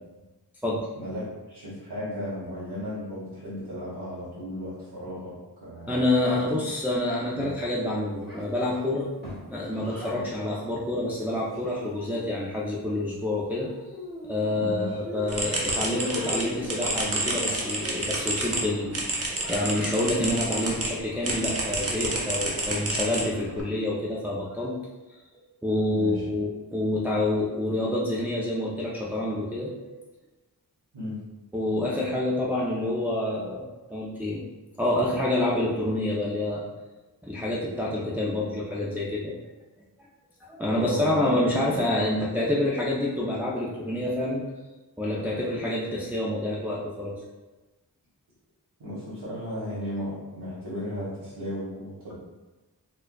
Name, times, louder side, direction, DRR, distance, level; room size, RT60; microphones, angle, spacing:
voice 1, 1.0-6.0 6.3-6.4 7.3-7.5 10.1-10.3 14.5-15.0 25.8-26.2 30.9-31.2 40.6-41.7 48.8-52.1, left 1 dB, 85° right, -11 dB, 1.2 m, -35 dB
voice 2, 5.9-9.1 9.4-13.7 14.2-24.8 25.1-25.2 25.6-29.9 31.5-34.4 34.8-36.7 37.2-39.4 40.5-44.4 45.0-47.2, left 1 dB, 5° right, -6 dB, 0.5 m, -27 dB
Child speech kid speaking, 8.2-10.2 11.1-12.3 13.5-14.7 15.0-16.8 19.3-20.2, equal, 25° left, 1.2 m, -41 dB
sound 1, 15.3-20.9 21.2-23.6, right 1 dB, 35° right, 0.8 m, -29 dB
4.5 x 2.4 x 2.2 m, 1.1 s
wide cardioid pair, 60°, 40 cm